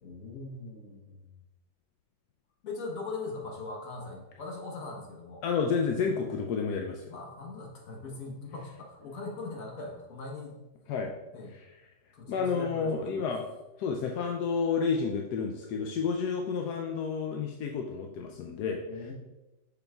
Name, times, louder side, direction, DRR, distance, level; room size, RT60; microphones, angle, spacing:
voice 1, 0.0-1.2 2.6-5.4 7.1-10.6 11.3-11.5 12.1-13.0 18.9-19.1, left 3 dB, 50° left, 0 dB, 1.4 m, -40 dB
voice 2, 5.4-7.1 10.9-11.1 12.3-13.5 13.8-19.1, left 5 dB, 75° left, 2 dB, 0.9 m, -30 dB
7.0 x 5.8 x 2.3 m, 0.99 s
omnidirectional pair, 2.1 m